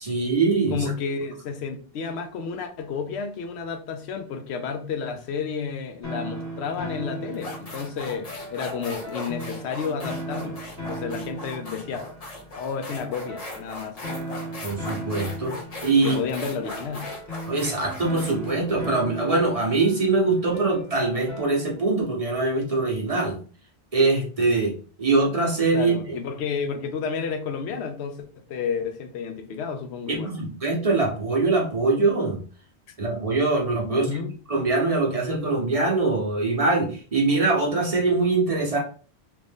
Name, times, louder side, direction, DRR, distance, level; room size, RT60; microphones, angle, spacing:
voice 1, 0.0-0.8 14.6-15.6 15.8-16.2 17.5-23.4 23.9-26.2 30.1-32.4 33.0-34.1 34.5-38.8, right 3 dB, 35° right, -1 dB, 0.9 m, -23 dB
voice 2, 0.7-10.6 10.9-12.0 12.6-14.0 16.0-17.1 25.7-30.3 33.8-34.3, left 6 dB, 85° left, 6 dB, 0.9 m, -31 dB
sound 1, 6.0-21.9, right 1 dB, 15° left, 1.1 m, -37 dB
sound 2, 6.7-6.9 7.3-19.7, left 2 dB, 40° left, 0.8 m, -39 dB
3.1 x 2.5 x 3.4 m, 0.40 s
omnidirectional pair, 1.1 m